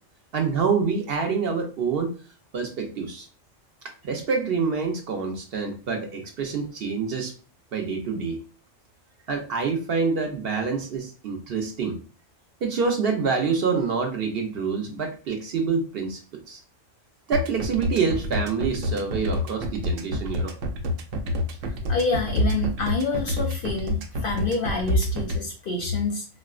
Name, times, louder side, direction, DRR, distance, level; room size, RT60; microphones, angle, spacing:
voice 1, 0.3-2.1 2.5-3.3 3.8-7.3 7.7-8.4 9.3-12.0 12.6-16.2 16.5-16.6 17.3-20.5, right 5 dB, 60° right, 2 dB, 0.7 m, -26 dB
sound 1, 17.3-25.4, left 1 dB, 90° right, 1.0 m, -28 dB
voice 2, 21.9-26.2, left 2 dB, 60° left, 1 dB, 0.6 m, -26 dB
4.2 x 2.1 x 2.3 m, 0.36 s
omnidirectional pair, 1.3 m